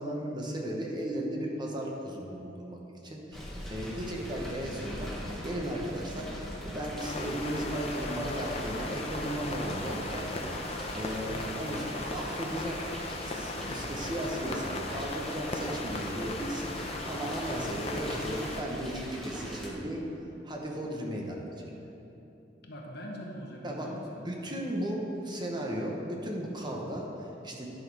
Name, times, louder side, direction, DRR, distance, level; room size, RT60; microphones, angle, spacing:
voice 1, 0.0-2.8 3.0-5.1 5.4-10.3 10.9-12.8 13.2-16.7 17.0-20.1 20.4-21.5 23.6-23.9 24.2-27.7, right 1 dB, 25° right, -1 dB, 1.0 m, -35 dB
sound 1, 3.3-19.7, equal, ahead, 1.3 m, -42 dB
sound 2, 7.0-18.6, left 2 dB, 35° left, 0.7 m, -37 dB
sound 3, 9.5-13.7, right 1 dB, 70° right, 1.5 m, -55 dB
voice 2, 13.6-13.9 22.6-24.3 26.7-26.9, equal, 60° left, -1 dB, 1.3 m, -43 dB
11.0 x 6.3 x 4.8 m, 3.0 s
head